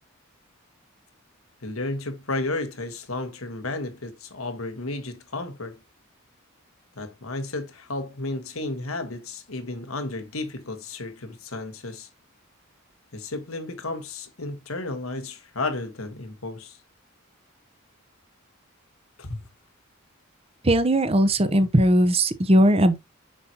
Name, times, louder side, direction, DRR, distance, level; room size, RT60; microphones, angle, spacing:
voice 1, 1.6-5.8 6.9-12.1 13.1-16.8 19.2-19.4, left 2 dB, 90° left, 1.5 m, -33 dB
voice 2, 20.6-23.0, right 1 dB, 30° right, 0.8 m, -19 dB
7.4 x 5.8 x 2.9 m
head